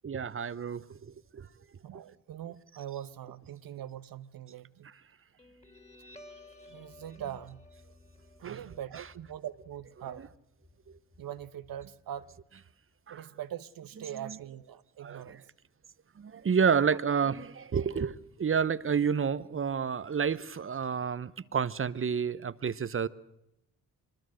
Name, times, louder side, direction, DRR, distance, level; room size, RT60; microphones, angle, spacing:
voice 1, 0.0-1.5 8.4-8.6 10.9-11.0 13.1-13.2 14.2-14.4 15.0-15.4 16.2-23.1, right 6 dB, 30° right, 0.9 m, -30 dB
voice 2, 1.8-4.9 6.7-7.7 8.4-10.3 11.2-12.3 13.1-15.5 16.7-17.0, right 11 dB, 55° right, 1.0 m, -42 dB
Guitar, 5.4-12.4, left 2 dB, 15° left, 3.1 m, -56 dB
24.0 x 21.0 x 6.4 m
hypercardioid pair, 45°, 41 cm